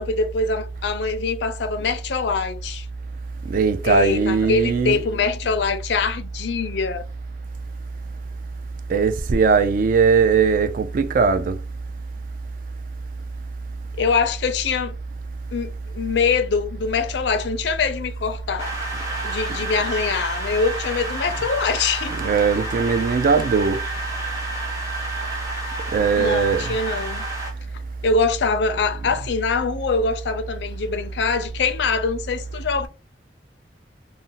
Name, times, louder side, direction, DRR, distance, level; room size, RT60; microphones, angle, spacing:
voice 1, 0.0-2.9 3.8-7.0 14.0-14.9 15.5-18.8 19.2-22.2 26.2-27.3 28.0-32.9, left 4 dB, 70° left, 0.4 m, -23 dB
voice 2, 3.5-5.0 8.9-11.6 22.2-23.8 25.9-26.8, right 5 dB, 50° right, 0.3 m, -19 dB
sound 1, 18.6-27.5, right 2 dB, 20° right, 0.8 m, -30 dB
2.5 x 2.0 x 3.8 m
head